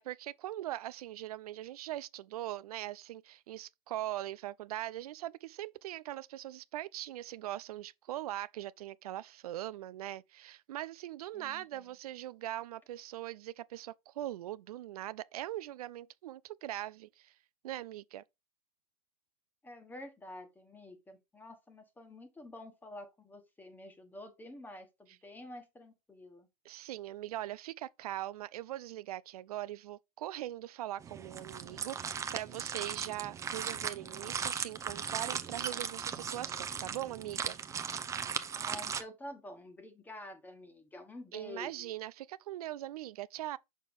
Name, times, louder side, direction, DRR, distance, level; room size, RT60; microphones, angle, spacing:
voice 1, 0.0-17.3 17.6-18.2 26.6-37.6 41.3-43.6, right 14 dB, 80° right, 0.5 m, -41 dB
voice 2, 11.3-11.9 19.6-26.5 38.5-41.9, left 1 dB, 10° left, 1.3 m, -49 dB
sound 1, 31.0-39.0, right 7 dB, 15° right, 0.6 m, -38 dB
6.3 x 5.4 x 3.6 m
supercardioid pair, 135°, 19 cm